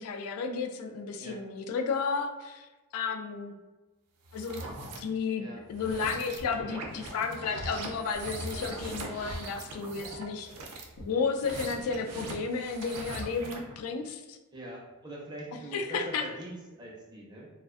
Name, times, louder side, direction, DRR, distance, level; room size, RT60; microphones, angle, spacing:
voice 1, 0.0-2.7 2.9-3.5 4.3-4.6 5.0-5.4 5.7-10.5 11.0-14.4 15.7-16.2, left 5 dB, 70° left, 6 dB, 0.3 m, -32 dB
sound 1, 4.3-5.0 5.7-13.7, right 2 dB, 90° right, 0.5 m, -40 dB
voice 2, 14.5-17.5, right 1 dB, 20° right, -3 dB, 0.5 m, -43 dB
2.4 x 2.1 x 2.3 m, 1.2 s
head